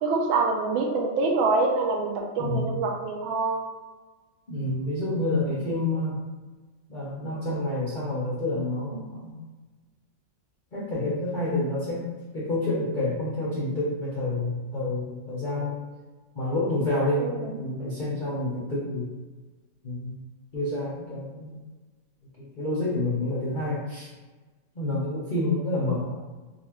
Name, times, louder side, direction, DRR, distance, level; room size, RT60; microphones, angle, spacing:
voice 1, 0.0-3.7 17.2-17.5, right 3 dB, 90° right, 1 dB, 1.4 m, -25 dB
voice 2, 2.4-2.7 4.5-6.2 6.9-9.3 10.7-12.1 12.3-15.7 16.3-19.1 19.8-20.1 20.5-21.6 22.4-24.1 24.8-26.2, left 2 dB, 80° left, -8 dB, 0.4 m, -28 dB
4.1 x 2.4 x 2.9 m, 1.3 s
omnidirectional pair, 2.2 m